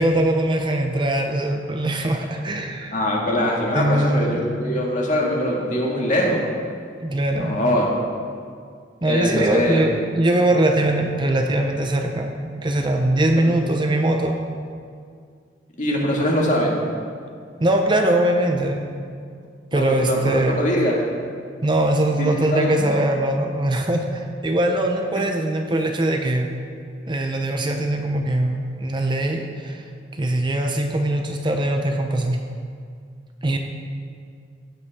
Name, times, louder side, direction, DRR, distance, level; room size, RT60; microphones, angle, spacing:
voice 1, 0.0-2.9 3.7-4.4 7.0-7.6 9.0-14.4 17.6-18.9 19.7-20.6 21.6-26.5 27.1-29.8 30.1-32.4 33.4-33.6, right 1 dB, 25° right, 3 dB, 0.6 m, -21 dB
voice 2, 2.9-6.4 7.3-7.9 9.0-9.8 13.4-13.5 15.8-16.8 19.7-21.0 22.1-22.9 25.1-25.2, equal, 45° left, -2 dB, 1.9 m, -22 dB
16.0 x 8.0 x 3.6 m, 2.2 s
head